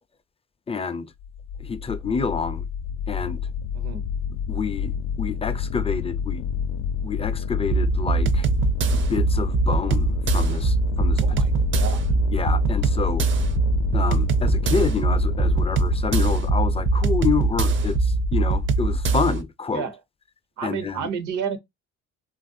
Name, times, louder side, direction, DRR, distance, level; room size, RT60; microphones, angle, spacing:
voice 1, 0.7-1.1 1.6-2.7 3.1-3.4 4.5-6.4 7.0-8.5 8.9-11.4 12.3-13.3 13.9-19.9 20.6-21.1, left 5 dB, 20° left, 0.3 m, -28 dB
sound 1, 1.2-19.1, left 7 dB, 85° left, 0.5 m, -28 dB
sound 2, 7.7-19.4, right 5 dB, 40° right, 0.5 m, -22 dB
voice 2, 11.2-12.0 19.7-20.0 20.6-21.6, right 7 dB, 80° right, 0.8 m, -31 dB
3.0 x 2.4 x 2.5 m
cardioid pair, 90°, 30 cm